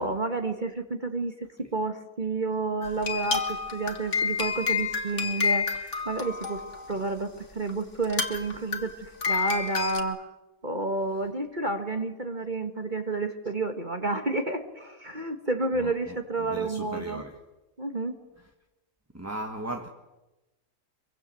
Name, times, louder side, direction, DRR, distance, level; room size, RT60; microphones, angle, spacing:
voice 1, 0.0-6.6 6.9-10.3 10.6-17.2 17.8-18.1, right 3 dB, 30° right, 1.6 m, -30 dB
sound 1, 2.8-7.0 7.7-7.8 8.0-10.0, left 5 dB, 45° left, 2.2 m, -29 dB
voice 2, 15.7-17.4 19.1-19.9, right 1 dB, 10° right, 1.4 m, -37 dB
24.5 x 24.0 x 7.7 m
omnidirectional pair, 1.9 m